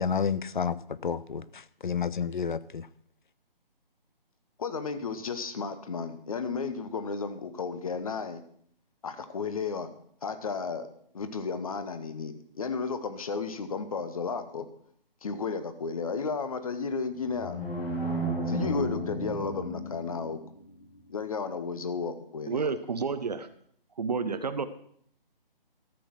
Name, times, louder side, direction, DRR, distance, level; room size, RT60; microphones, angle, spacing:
voice 1, 0.0-2.9, left 6 dB, 55° left, 17 dB, 0.5 m, -30 dB
voice 2, 4.6-8.4 9.0-9.9 10.2-10.9 11.1-14.7 15.2-17.6 18.5-20.4 21.1-22.7, left 5 dB, 40° left, 11 dB, 0.9 m, -33 dB
sound 1, 17.3-20.4, equal, 80° left, 3.4 m, -32 dB
voice 3, 22.5-23.5 24.0-24.7, right 5 dB, 45° right, 11 dB, 0.7 m, -30 dB
13.5 x 6.4 x 6.0 m, 0.64 s
figure-of-eight pair, 155°, 29 cm